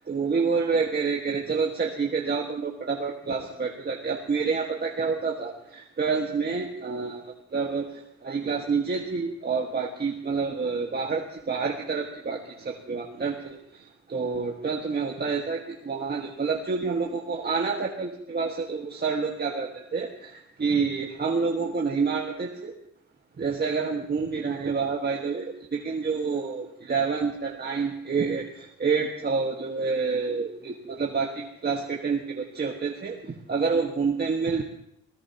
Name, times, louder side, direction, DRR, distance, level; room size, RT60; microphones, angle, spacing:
voice 1, 0.1-7.9 8.2-13.6 14.1-20.3 20.6-22.7 23.4-34.6, right 5 dB, 35° right, -1 dB, 1.7 m, -28 dB
22.5 x 18.0 x 3.0 m, 0.74 s
cardioid pair, 90°, 30 cm